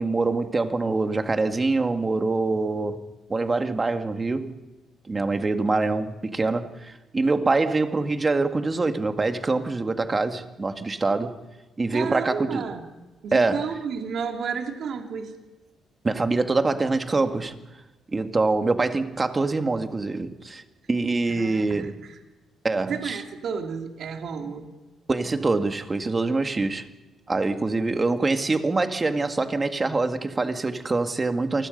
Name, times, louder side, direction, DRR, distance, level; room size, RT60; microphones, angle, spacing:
voice 1, 0.0-3.0 3.3-4.6 5.1-11.4 11.8-12.6 13.3-13.6 16.0-17.6 18.1-20.6 20.9-22.0 22.6-23.2 25.1-26.9 27.3-31.7, right 3 dB, 25° right, 2.0 m, -24 dB
voice 2, 11.9-12.8 13.2-15.3 21.3-22.1 22.9-24.7, right 6 dB, 65° right, 2.8 m, -32 dB
28.5 x 20.5 x 5.4 m
cardioid pair, 90°, 0 cm